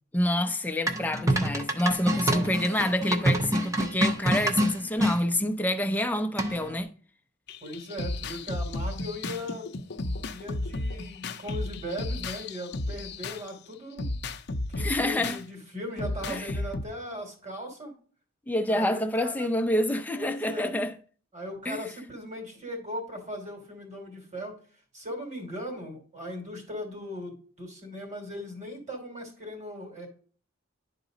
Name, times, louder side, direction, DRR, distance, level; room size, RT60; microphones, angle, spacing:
voice 1, 0.1-6.9 14.8-15.4 16.3-16.5 18.5-20.9 21.7-21.8, left 1 dB, 10° left, 0.6 m, -27 dB
sound 1, 0.9-5.2 6.4-6.8, right 1 dB, 15° right, 0.9 m, -26 dB
voice 2, 2.1-2.5 2.9-3.0 7.6-9.7 10.3-14.1 14.7-17.9 18.7-19.5 20.1-20.8 21.3-24.5 24.9-30.1, equal, 35° right, 2.9 m, -38 dB
sound 2, 7.5-13.5 14.0-15.4 16.0-16.8, left 2 dB, 55° left, 0.6 m, -33 dB
11.0 x 4.0 x 3.9 m
head